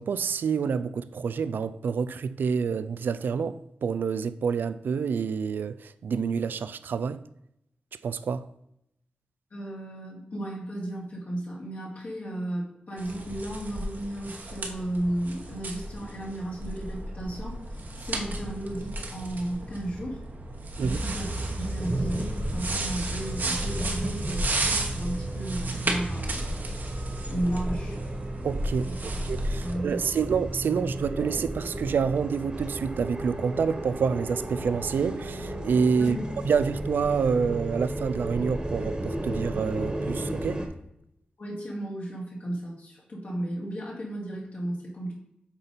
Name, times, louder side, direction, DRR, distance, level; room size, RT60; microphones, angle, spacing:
voice 1, 0.0-7.2 8.0-8.5 20.8-21.0 28.4-28.9 29.2-36.2 36.4-40.6, right 6 dB, 90° right, 0.3 m, -28 dB
voice 2, 9.5-17.6 18.0-20.2 20.8-21.3 21.6-26.6 27.3-28.0 28.8-29.2 29.6-30.2 36.0-36.3 41.4-45.1, right 1 dB, 70° left, 2.5 m, -34 dB
sound 1, 13.0-29.7, right 2 dB, 70° right, 1.2 m, -34 dB
sound 2, 20.8-40.7, right 1 dB, 30° right, 1.3 m, -34 dB
7.1 x 4.1 x 5.1 m
cardioid pair, 60°, 3 cm